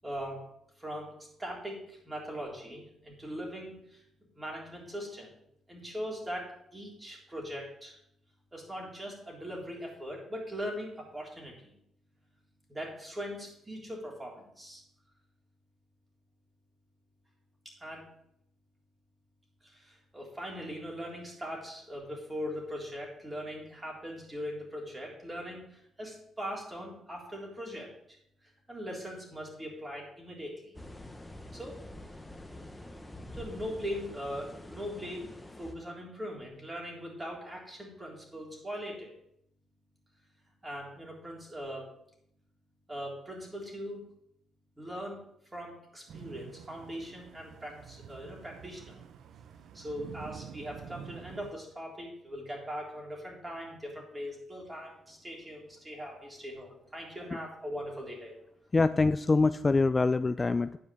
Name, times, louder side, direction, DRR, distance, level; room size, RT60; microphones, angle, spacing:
voice 1, 0.0-0.4 0.8-1.1 1.4-4.0 4.3-5.3 5.7-8.0 8.5-11.7 12.7-14.8 17.7-18.0 19.6-27.9 28.7-30.7 31.5-31.8 33.3-35.3 35.6-39.2 40.6-41.9 42.9-44.0 44.8-45.2 45.5-49.0 49.7-58.3, equal, 15° right, -2 dB, 3.6 m, -40 dB
sound 1, 30.7-35.7, left 1 dB, 5° left, 1.2 m, -46 dB
sound 2, 46.1-51.5, right 8 dB, 70° right, 0.8 m, -48 dB
voice 2, 58.7-60.8, left 3 dB, 25° left, 12 dB, 0.3 m, -25 dB
9.6 x 5.0 x 7.1 m, 0.74 s
cardioid pair, 90°, 0 cm